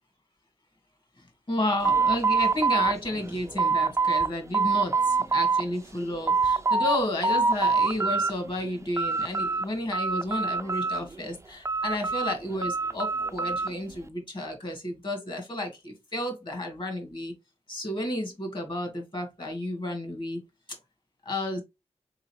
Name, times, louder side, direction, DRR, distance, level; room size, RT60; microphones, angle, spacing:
voice 1, 1.2-17.3 17.7-20.4 21.2-21.6, left 1 dB, 40° left, 1.8 m, -32 dB
sound 1, 1.8-4.3 4.5-5.6 6.0-7.0 7.2-8.3 8.7-9.7 9.9-11.2 11.7-13.7, right 4 dB, 25° right, 0.4 m, -25 dB
3.8 x 3.8 x 3.0 m
wide cardioid pair, 85°, 12 cm